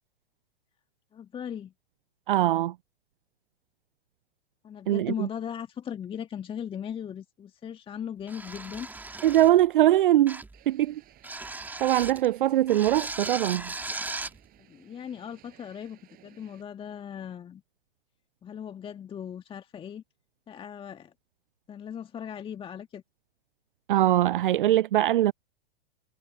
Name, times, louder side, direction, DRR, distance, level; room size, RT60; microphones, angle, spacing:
voice 1, 1.1-1.7 4.6-8.9 14.7-17.6 18.4-20.0 20.5-21.1 21.7-23.0, left 8 dB, 15° left, 1.7 m, -38 dB
voice 2, 2.3-2.7 4.9-5.3 9.2-11.0 11.8-13.7 23.9-25.3, right 13 dB, 60° right, 0.5 m, -22 dB
sound 1, 8.3-9.6 10.3-10.6 11.2-12.2 12.7-14.4, right 3 dB, 5° right, 2.0 m, -37 dB
sound 2, 10.5-16.6, right 14 dB, 30° right, 6.7 m, -57 dB
figure-of-eight pair, 105°, 30 cm